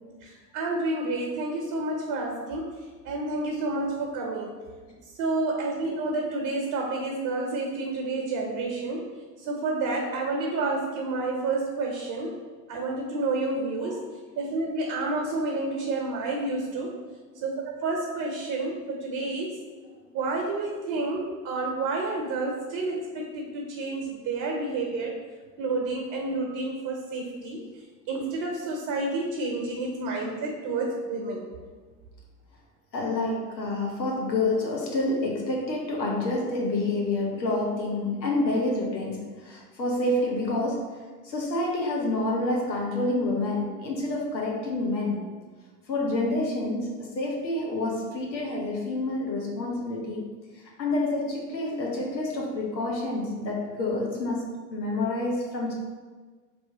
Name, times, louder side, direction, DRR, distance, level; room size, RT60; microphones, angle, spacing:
voice 1, 0.2-2.8 3.0-4.5 5.2-9.1 9.4-12.3 12.7-14.1 14.4-17.0 17.4-17.5 17.8-19.6 20.1-25.1 25.6-27.6 28.1-31.5, right 2 dB, 45° right, 0 dB, 0.9 m, -29 dB
voice 2, 32.9-40.8 41.2-45.2 45.9-50.3 50.8-54.4 54.7-55.7, left 2 dB, 85° left, -2 dB, 1.0 m, -28 dB
3.3 x 3.1 x 4.0 m, 1.4 s
figure-of-eight pair, 75°, 50 cm